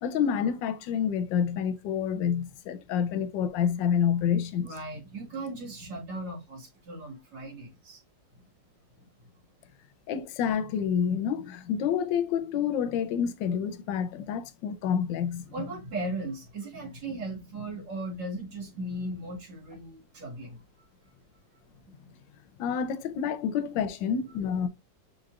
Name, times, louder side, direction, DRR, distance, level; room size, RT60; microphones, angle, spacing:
voice 1, 0.0-4.7 10.1-15.5 22.6-24.7, left 8 dB, 80° left, 1.3 m, -28 dB
voice 2, 4.6-8.0 9.0-9.3 15.3-20.9 21.9-22.1, right 1 dB, 75° right, 2.5 m, -38 dB
6.3 x 3.0 x 2.3 m
omnidirectional pair, 2.0 m